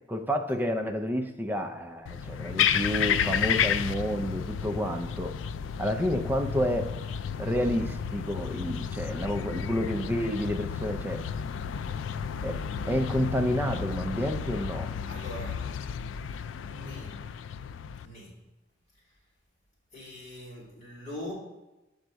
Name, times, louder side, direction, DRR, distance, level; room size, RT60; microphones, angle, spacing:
voice 1, 0.1-5.3 5.8-6.9 7.4-11.2 12.4-14.9, equal, 10° right, 4 dB, 0.5 m, -30 dB
sound 1, 2.1-18.1, left 7 dB, 80° left, 0.3 m, -32 dB
voice 2, 15.1-15.6 16.7-17.1 18.0-18.3 19.9-21.3, left 1 dB, 35° left, -7 dB, 2.6 m, -41 dB
6.9 x 5.2 x 4.6 m, 1.0 s
head